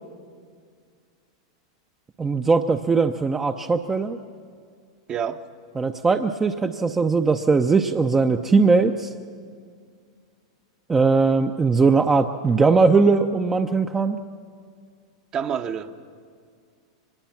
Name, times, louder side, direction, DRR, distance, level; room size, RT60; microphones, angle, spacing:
voice 1, 2.2-4.2 5.8-9.1 10.9-14.2, right 4 dB, 15° right, 6 dB, 0.7 m, -20 dB
voice 2, 5.1-5.4 15.3-16.0, right 8 dB, 35° right, 8 dB, 1.0 m, -27 dB
24.0 x 20.0 x 5.9 m, 2.1 s
hypercardioid pair, 95°, 2 cm